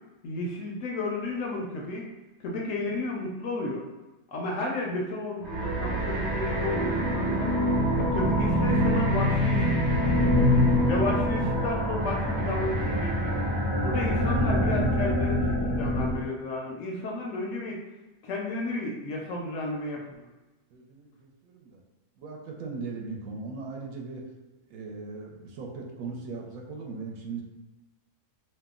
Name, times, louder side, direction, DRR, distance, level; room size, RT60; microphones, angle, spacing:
voice 1, 0.2-2.1 2.4-3.8 4.3-7.5 8.0-9.8 10.9-13.4 13.8-17.8 18.2-20.0, left 2 dB, 70° left, -1 dB, 0.8 m, -32 dB
sound 1, 5.4-16.2, equal, 30° right, 0.6 m, -25 dB
voice 2, 20.0-20.3 20.7-21.8 22.2-24.2 24.7-27.4, right 4 dB, 70° right, 0 dB, 1.0 m, -39 dB
2.7 x 2.0 x 3.6 m, 1.1 s
omnidirectional pair, 1.6 m